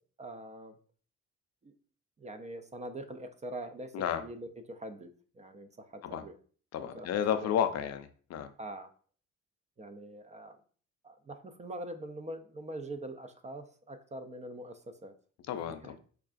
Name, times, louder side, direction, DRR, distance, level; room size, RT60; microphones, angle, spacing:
voice 1, 0.2-0.8 1.6-1.7 2.2-3.9 4.2-6.4 6.8-7.1 7.4-7.5 7.8-7.9 8.6-8.9 9.8-10.6 11.0-15.1 15.8-16.0, right 1 dB, 25° right, 8 dB, 0.4 m, -43 dB
voice 2, 3.9-4.2 6.0-6.2 6.7-8.5 15.5-16.0, left 9 dB, 60° left, 10 dB, 0.4 m, -32 dB
4.5 x 2.3 x 2.4 m, 0.44 s
cardioid pair, 90°, 30 cm